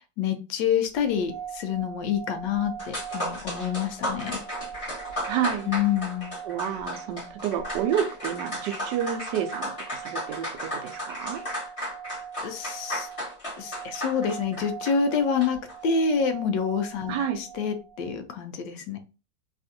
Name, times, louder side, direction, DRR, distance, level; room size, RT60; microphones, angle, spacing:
voice 1, 0.0-4.3 5.7-6.3 12.4-13.1 13.6-15.6 15.8-19.0, left 6 dB, 80° left, 7 dB, 1.2 m, -27 dB
sound 1, 1.0-18.2, right 8 dB, 40° right, 0.7 m, -42 dB
sound 2, 2.8-15.8, left 1 dB, 25° left, 1.0 m, -35 dB
voice 2, 5.3-5.7 6.4-11.4 17.1-17.4, right 9 dB, 75° right, 6 dB, 1.1 m, -30 dB
3.4 x 2.5 x 2.5 m, 0.32 s
omnidirectional pair, 1.9 m